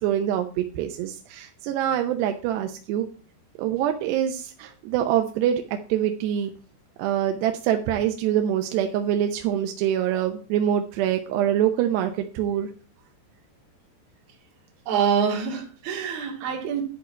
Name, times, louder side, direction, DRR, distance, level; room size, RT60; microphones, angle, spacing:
voice 1, 0.0-3.1 3.6-6.5 7.0-12.7, right 10 dB, 80° right, 2.8 m, -25 dB
voice 2, 14.9-16.8, right 7 dB, 65° right, 3.8 m, -25 dB
11.0 x 4.5 x 8.1 m
omnidirectional pair, 5.0 m